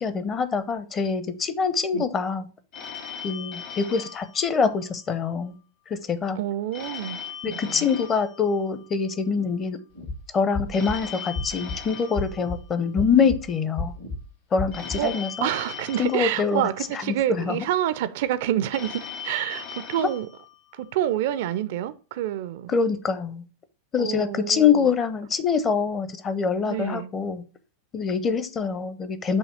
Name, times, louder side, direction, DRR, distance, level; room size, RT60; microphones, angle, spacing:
voice 1, 0.0-2.4 3.2-5.5 5.9-6.4 7.4-9.8 10.3-13.9 14.5-15.5 16.0-16.7 17.3-17.6 22.7-23.4 23.9-27.4 27.9-29.4, left 6 dB, 25° left, 0.6 m, -24 dB
Telephone, 2.7-5.2 6.7-9.2 10.7-13.2 14.7-17.2 18.7-21.2, left 7 dB, 45° left, 1.0 m, -40 dB
voice 2, 6.4-7.2 7.4-7.9 15.0-20.3 20.7-22.7 24.0-24.9 26.6-27.1, right 12 dB, 50° right, 0.4 m, -28 dB
sound 1, 10.0-10.2 10.5-11.0 11.4-11.8 12.2-12.6 13.0-13.4 13.8-14.2 14.6-15.0, left 2 dB, 70° left, 1.8 m, -31 dB
6.3 x 2.8 x 5.5 m
figure-of-eight pair, 90°, 0 cm